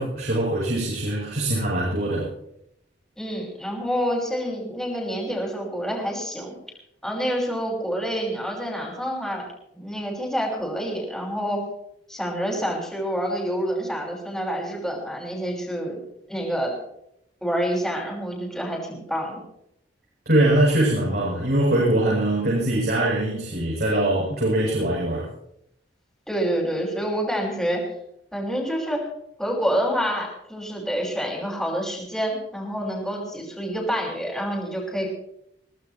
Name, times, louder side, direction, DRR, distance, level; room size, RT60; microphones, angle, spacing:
voice 1, 0.0-2.3 20.3-25.2, right 1 dB, 65° right, -6 dB, 7.9 m, -22 dB
voice 2, 3.2-6.6 7.0-9.5 9.7-11.6 12.1-16.0 16.3-16.7 17.4-19.4 26.3-27.8 28.3-29.1 29.4-35.1, equal, 5° left, -2 dB, 5.9 m, -27 dB
23.5 x 18.5 x 3.2 m, 0.76 s
head